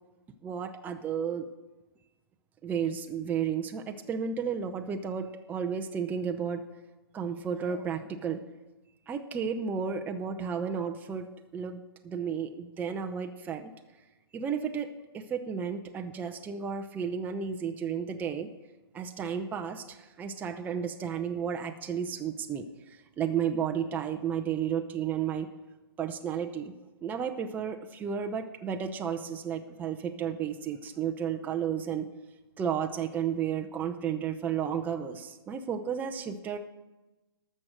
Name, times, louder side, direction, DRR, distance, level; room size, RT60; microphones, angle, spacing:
voice 1, 0.4-1.5 2.6-6.6 7.1-8.4 9.1-11.3 11.5-13.7 14.3-18.5 18.9-25.5 26.0-26.7 27.0-32.1 32.6-36.6, right 7 dB, 15° right, 4 dB, 0.6 m, -33 dB
13.0 x 6.5 x 6.2 m, 1.1 s
figure-of-eight pair, 125°, 13 cm